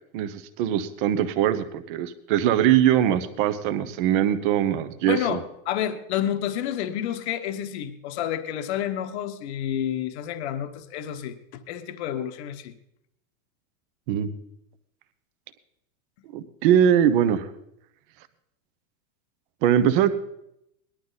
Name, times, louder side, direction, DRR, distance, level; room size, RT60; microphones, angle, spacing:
voice 1, 0.1-5.4 14.1-14.3 16.3-17.5 19.6-20.1, right 10 dB, 35° right, 11 dB, 0.9 m, -22 dB
voice 2, 5.1-5.4 5.7-12.7, left 10 dB, 50° left, 9 dB, 1.1 m, -29 dB
19.5 x 11.5 x 4.0 m, 0.79 s
supercardioid pair, 175°, 44 cm